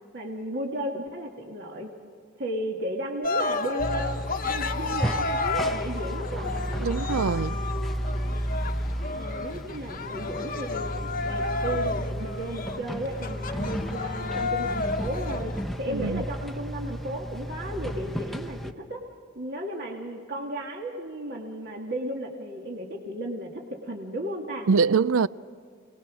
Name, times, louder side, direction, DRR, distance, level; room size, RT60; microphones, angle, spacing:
voice 1, 0.1-1.9 2.4-4.2 4.5-6.5 9.1-15.5 15.8-19.0 19.4-24.7, right 1 dB, 50° right, 2.0 m, -34 dB
Cheering, 3.2-15.6, left 3 dB, 40° left, 1.0 m, -32 dB
sound 1, 3.8-18.7, equal, ahead, 0.8 m, -33 dB
voice 2, 6.8-7.6 15.9-16.2 24.7-25.3, right 5 dB, 80° right, 0.5 m, -23 dB
27.5 x 19.5 x 6.2 m
head